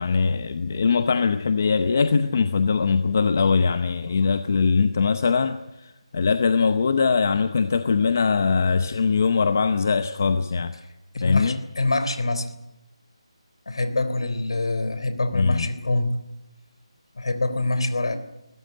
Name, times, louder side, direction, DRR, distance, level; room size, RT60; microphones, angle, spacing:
voice 1, 0.0-10.7 11.2-11.6 15.3-15.7, left 5 dB, 25° left, 10 dB, 0.7 m, -21 dB
voice 2, 11.1-12.5 13.7-16.1 17.2-18.2, left 2 dB, 55° left, 11 dB, 3.5 m, -25 dB
22.0 x 18.0 x 9.4 m, 0.95 s
figure-of-eight pair, 180°, 3 cm